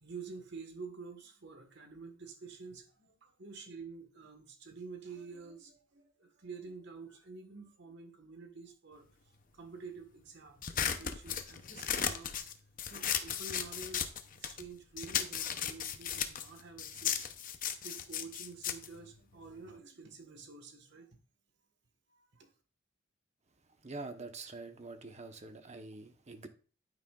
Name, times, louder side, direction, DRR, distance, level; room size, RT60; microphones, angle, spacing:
voice 1, 0.0-9.0 9.5-12.4 12.9-17.3 17.8-21.1 22.1-22.5, right 4 dB, 60° right, 1.5 m, -49 dB
sound 1, 10.6-14.7 15.0-19.8, left 8 dB, 45° left, 0.7 m, -36 dB
voice 2, 23.8-26.5, right 3 dB, 35° right, 1.0 m, -45 dB
9.8 x 9.0 x 2.4 m
head